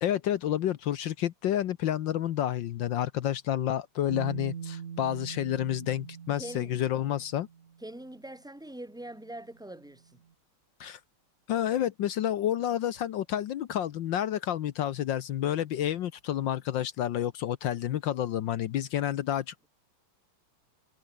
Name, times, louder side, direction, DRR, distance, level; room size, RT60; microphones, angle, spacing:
voice 1, 0.0-7.5 10.8-11.0 11.5-19.7, left 11 dB, 65° left, 1.4 m, -30 dB
Bass guitar, 4.1-8.0 9.2-9.3, right 7 dB, 45° right, 1.1 m, -42 dB
voice 2, 6.3-6.7 7.8-10.2, right 1 dB, ahead, 2.4 m, -43 dB
omnidirectional pair, 2.4 m